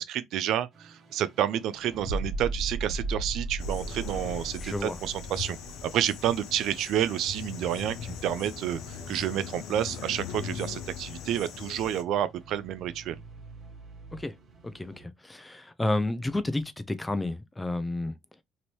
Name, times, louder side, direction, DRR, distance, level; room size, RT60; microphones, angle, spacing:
voice 1, 0.0-5.6 5.8-13.2, right 11 dB, 65° right, 0.3 m, -30 dB
sound 1, 0.7-15.0, right 2 dB, 45° right, 1.1 m, -40 dB
sound 2, 3.6-12.0, left 7 dB, 70° left, 0.5 m, -40 dB
voice 2, 4.6-5.0 14.1-14.3 14.6-18.2, left 2 dB, 15° left, 0.5 m, -31 dB
2.9 x 2.6 x 3.0 m
supercardioid pair, 70°, 0 cm